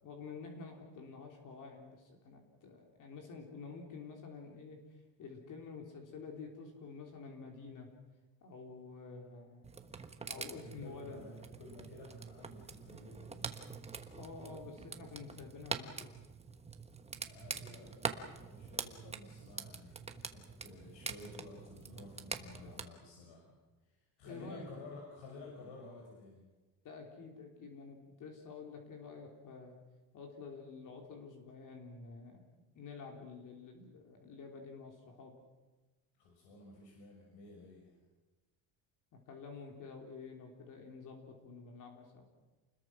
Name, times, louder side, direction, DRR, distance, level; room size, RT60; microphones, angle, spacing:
voice 1, 0.0-4.8 5.2-7.9 8.4-9.7 10.3-11.3 14.2-16.2 22.6-22.8 24.2-24.7 26.8-29.8 30.1-35.3 39.3-42.3, left 4 dB, 45° left, 2 dB, 3.5 m, -49 dB
sound 1, 9.6-22.8, right 4 dB, 15° right, 1.3 m, -45 dB
voice 2, 10.3-13.5 17.2-23.5 23.9-26.5 36.2-38.0, left 3 dB, 75° left, 0 dB, 6.2 m, -53 dB
29.0 x 21.0 x 6.2 m, 1.2 s
cardioid pair, 165°, 42 cm